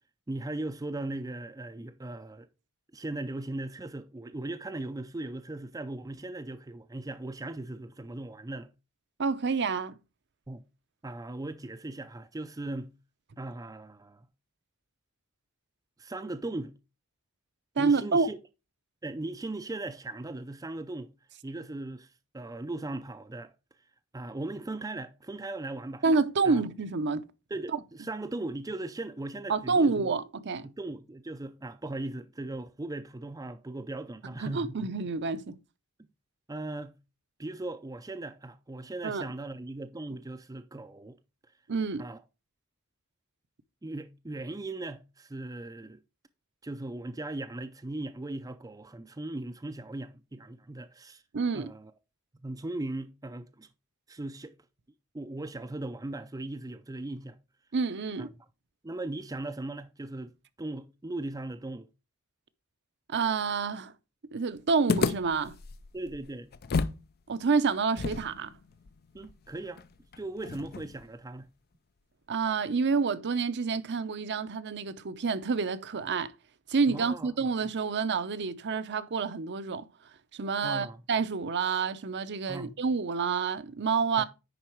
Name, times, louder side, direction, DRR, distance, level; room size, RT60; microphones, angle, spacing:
voice 1, 0.3-2.5 2.9-8.7 10.5-10.6 11.0-12.9 13.4-14.3 16.0-16.7 17.8-18.4 19.0-21.1 21.4-23.5 24.1-26.0 26.4-26.6 27.5-30.1 30.6-34.8 36.5-37.0 37.4-41.2 42.0-42.2 43.8-46.0 46.6-51.2 51.5-51.9 52.4-53.7 54.1-54.5 55.1-57.4 58.2-58.3 58.8-60.3 60.6-61.9 65.9-66.5 69.1-69.8 70.2-71.5 76.9-77.3 80.6-81.0 82.5-82.7 84.2-84.3, right 2 dB, 15° right, 0.5 m, -38 dB
voice 2, 9.2-10.0 17.8-18.3 26.0-27.3 29.5-30.7 34.4-35.6 39.0-39.2 41.7-42.1 51.3-51.7 57.7-58.3 63.1-63.9 64.3-65.6 67.3-68.5 72.3-76.3 76.7-79.9 80.3-84.2, right 4 dB, 50° right, 0.7 m, -28 dB
sound 1, 64.9-67.0 67.3-67.4 68.0-71.1, left 4 dB, 45° left, 0.5 m, -33 dB
10.0 x 4.0 x 4.5 m
head